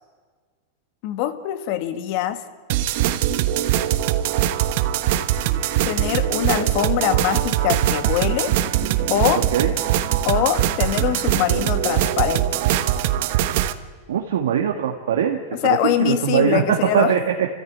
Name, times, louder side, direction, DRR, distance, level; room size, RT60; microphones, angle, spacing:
voice 1, 1.0-2.4 5.8-8.6 9.1-9.4 10.2-12.6 15.6-17.1, left 11 dB, 55° left, 10 dB, 1.8 m, -23 dB
sound 1, 2.7-13.7, right 12 dB, 65° right, 1.2 m, -21 dB
voice 2, 14.1-17.5, right 8 dB, 85° right, 2 dB, 1.9 m, -21 dB
27.5 x 15.0 x 9.4 m, 1.5 s
supercardioid pair, 125°, 0 cm